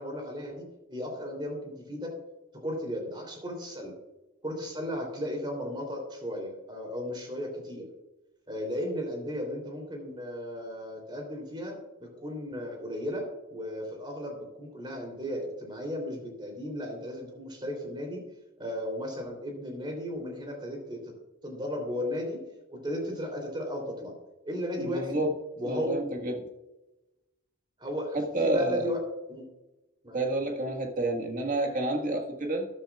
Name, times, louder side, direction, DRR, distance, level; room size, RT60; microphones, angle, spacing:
voice 1, 0.0-2.1 2.5-3.9 4.4-7.9 8.5-18.2 18.6-21.1 21.4-24.1 24.4-25.2 25.6-26.0 27.8-29.0 29.3-29.5 30.0-30.3, equal, 20° right, 2 dB, 3.3 m, -35 dB
voice 2, 24.8-25.3 25.6-26.5 28.1-28.9 30.1-32.7, right 2 dB, 40° right, 3 dB, 1.7 m, -29 dB
13.5 x 11.5 x 2.4 m, 1.0 s
head